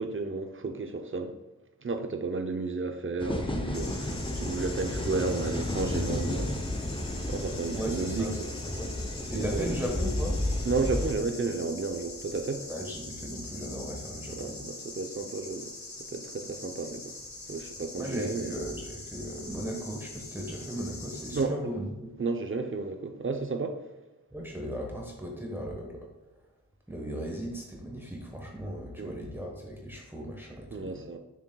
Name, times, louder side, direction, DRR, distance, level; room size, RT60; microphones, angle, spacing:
voice 1, 0.0-1.3 1.8-6.6 7.1-8.5 9.3-9.8 10.6-12.7 14.3-15.7 16.1-17.2 17.5-18.5 21.3-21.5 22.2-23.8 29.0-29.2 30.7-31.2, right 4 dB, 40° right, 0.7 m, -32 dB
sound 1, 3.2-11.1, left 1 dB, 15° left, 0.7 m, -32 dB
sound 2, 3.7-21.4, left 3 dB, 55° left, 1.2 m, -43 dB
voice 2, 7.7-8.3 8.8-8.9 9.3-10.4 12.7-14.7 18.0-22.1 24.3-26.1 26.9-31.0, equal, 5° right, 1.2 m, -37 dB
6.9 x 6.3 x 2.3 m
wide cardioid pair, 65°, 32 cm